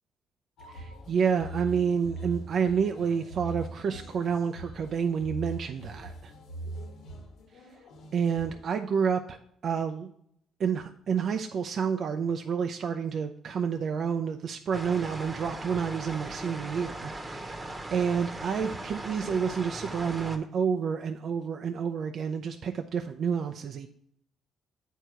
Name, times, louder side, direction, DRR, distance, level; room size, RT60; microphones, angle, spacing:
sound 1, 0.6-8.6, right 2 dB, 75° left, 1.4 m, -42 dB
voice 1, 0.7-6.1 8.1-9.4 9.6-10.1 10.6-17.5 17.9-23.9, right 6 dB, 55° right, 5 dB, 0.5 m, -29 dB
sound 2, 14.7-20.4, right 1 dB, 20° right, 1.1 m, -39 dB
8.0 x 4.6 x 4.9 m, 0.68 s
cardioid pair, 85°, 0 cm